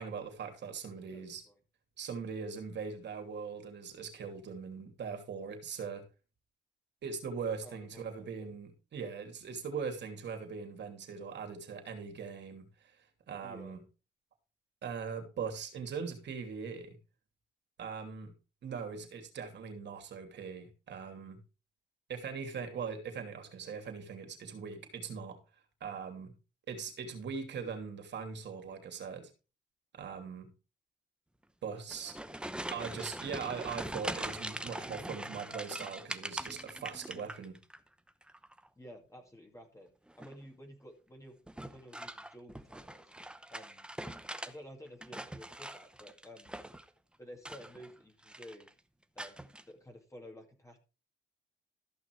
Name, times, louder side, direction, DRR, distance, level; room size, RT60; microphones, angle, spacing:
voice 1, 0.0-1.4 2.0-6.1 7.0-12.7 13.3-13.8 14.8-17.0 17.8-18.3 18.6-21.4 22.1-25.4 25.8-26.3 26.7-29.3 29.9-30.5 31.6-32.2 32.7-37.6, right 6 dB, 60° right, 2.9 m, -41 dB
voice 2, 1.1-1.6 7.6-8.5 13.4-13.8 37.1-37.3 38.8-39.9 40.2-41.4 41.7-43.1 43.5-43.9 44.4-46.6 47.2-48.7 49.1-50.8, equal, 15° left, 2.3 m, -52 dB
sound 1, 31.8-37.8 38.1-38.7 40.1-40.5 41.5-44.5 44.9-46.9 47.4-48.0 48.2-48.7 49.2-49.6, right 1 dB, 5° right, 0.8 m, -42 dB
14.0 x 6.1 x 4.7 m
cardioid pair, 90°, 20 cm